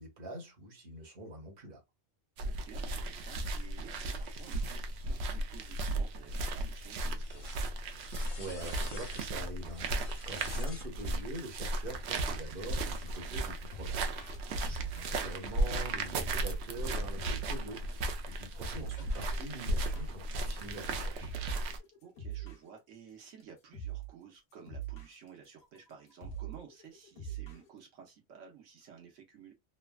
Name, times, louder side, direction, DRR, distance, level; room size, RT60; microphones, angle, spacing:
voice 1, 0.0-1.8 8.4-14.2 14.5-21.3, right 1 dB, 45° right, 1.3 m, -44 dB
sound 1, 2.4-21.8, right 2 dB, 70° right, 0.8 m, -35 dB
voice 2, 2.4-7.6 10.5-10.9 14.6-15.0 22.0-29.5, right 7 dB, 85° right, 1.2 m, -54 dB
sound 2, 2.9-10.9 12.0-14.4 15.0-20.0 20.5-21.1, left 2 dB, 35° left, 0.8 m, -55 dB
sound 3, 13.1-22.7 23.3-23.4 23.7-24.1 24.5-27.7, right 7 dB, 60° left, 1.1 m, -43 dB
3.2 x 2.2 x 2.2 m
omnidirectional pair, 1.3 m